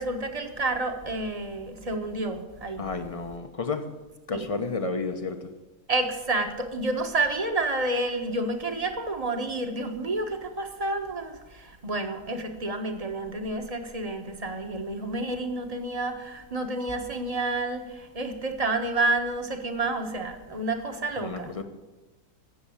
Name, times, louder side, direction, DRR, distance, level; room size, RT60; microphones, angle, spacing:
voice 1, 0.0-2.8 4.3-4.5 5.9-21.5, right 2 dB, 25° right, 5 dB, 1.3 m, -29 dB
voice 2, 2.8-3.9 4.3-5.5 21.2-21.6, left 4 dB, 25° left, 7 dB, 1.0 m, -31 dB
16.0 x 7.0 x 8.6 m, 1.1 s
omnidirectional pair, 1.6 m